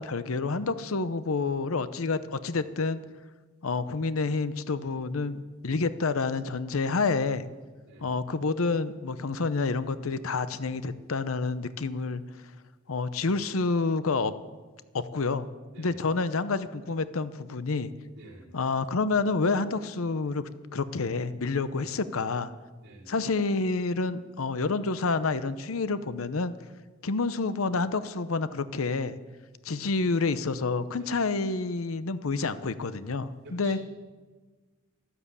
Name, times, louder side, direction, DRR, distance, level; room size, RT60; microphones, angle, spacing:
voice 1, 0.0-3.0 3.6-7.5 8.0-12.2 12.9-14.3 14.9-15.5 15.8-17.9 18.5-20.4 20.7-22.5 23.1-26.5 27.0-29.2 29.6-33.8, left 3 dB, 90° left, 13 dB, 0.8 m, -28 dB
voice 2, 18.2-18.5 22.8-23.1 29.6-29.9 33.4-33.9, right 2 dB, 55° right, -3 dB, 3.8 m, -49 dB
12.5 x 12.5 x 8.3 m, 1.3 s
head